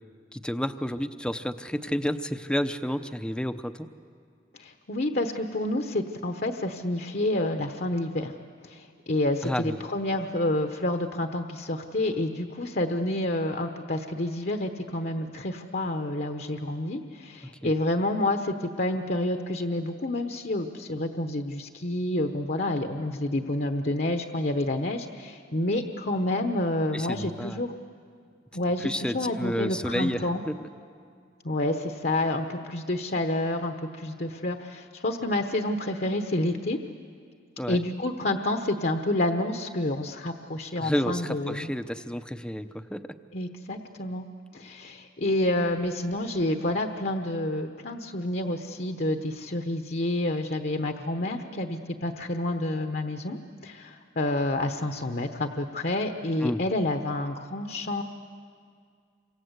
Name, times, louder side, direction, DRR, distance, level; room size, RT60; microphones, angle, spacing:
voice 1, 0.3-3.9 9.4-9.8 17.6-17.7 26.9-27.6 28.8-30.5 37.6-37.8 40.8-43.0 56.4-56.6, equal, 5° left, 10 dB, 0.6 m, -30 dB
voice 2, 4.5-8.3 8.6-27.7 28.5-30.4 31.4-36.8 37.7-41.7 43.3-44.3 44.5-58.0, left 1 dB, 50° left, 6 dB, 1.0 m, -29 dB
28.0 x 25.5 x 8.1 m, 2.2 s
head